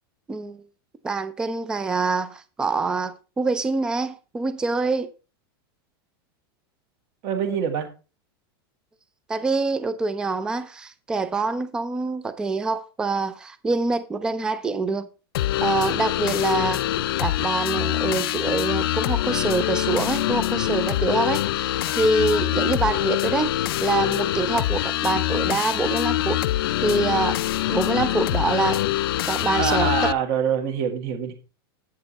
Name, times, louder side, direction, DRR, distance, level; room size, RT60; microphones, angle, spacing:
voice 1, 0.3-0.6 1.0-5.1 9.3-15.1 15.6-16.8 17.2-23.5 23.8-26.4 26.8-27.4 27.7-28.8 29.3-29.9, right 3 dB, 5° right, 0.4 m, -25 dB
voice 2, 7.2-7.9 29.6-31.3, right 8 dB, 30° right, 1.4 m, -25 dB
sound 1, 15.3-30.1, left 14 dB, 70° left, 0.4 m, -24 dB
8.8 x 6.6 x 4.0 m
supercardioid pair, 180°, 13 cm